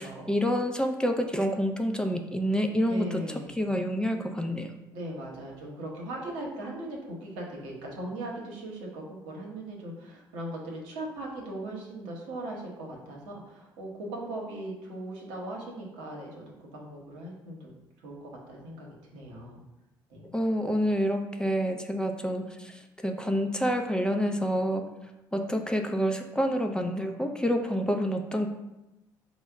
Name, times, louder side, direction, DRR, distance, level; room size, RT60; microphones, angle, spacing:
voice 1, 0.3-4.7 20.3-24.8 25.3-28.5, equal, 10° left, 4 dB, 0.4 m, -28 dB
voice 2, 2.9-3.6 4.9-17.8 18.0-19.6 20.1-20.3, right 1 dB, 75° right, -1 dB, 0.9 m, -39 dB
4.4 x 2.1 x 3.4 m, 0.97 s
hypercardioid pair, 60°, 10 cm